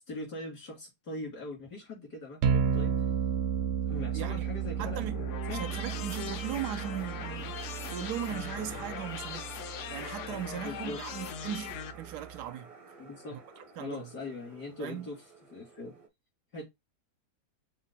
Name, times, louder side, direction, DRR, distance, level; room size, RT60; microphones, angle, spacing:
voice 1, 0.1-2.9 3.9-5.7 10.5-11.0 13.0-13.4 13.8-15.2 15.5-15.9 16.5-16.7, left 2 dB, 90° left, 3.5 m, -41 dB
sound 1, 2.4-12.5, right 7 dB, 65° right, 0.7 m, -34 dB
sound 2, 3.9-16.1, right 4 dB, 30° right, 0.6 m, -50 dB
voice 2, 4.8-5.2 5.5-9.5 9.9-12.7 13.3-14.1 14.8-15.1, right 10 dB, 85° right, 1.2 m, -38 dB
sound 3, 5.1-11.9, left 9 dB, 65° left, 0.7 m, -41 dB
6.3 x 2.1 x 4.0 m
omnidirectional pair, 1.7 m